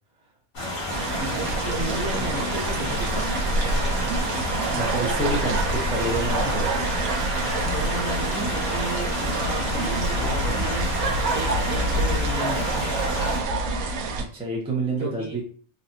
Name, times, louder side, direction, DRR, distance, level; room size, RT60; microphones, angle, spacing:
sound 1, 0.5-13.4, left 1 dB, 80° left, 1.9 m, -31 dB
sound 2, 0.5-7.6, equal, 60° left, 1.1 m, -41 dB
sound 3, 0.9-14.2, right 2 dB, 90° right, 1.1 m, -26 dB
voice 1, 1.1-3.4 6.3-6.6 7.7-11.0 11.3-12.8 15.0-15.4, right 1 dB, 60° right, -2 dB, 1.4 m, -34 dB
voice 2, 4.8-6.8 8.4-8.8 10.1-10.7 14.2-15.4, right 2 dB, 5° right, -2 dB, 0.4 m, -29 dB
4.0 x 2.3 x 2.7 m, 0.44 s
omnidirectional pair, 1.5 m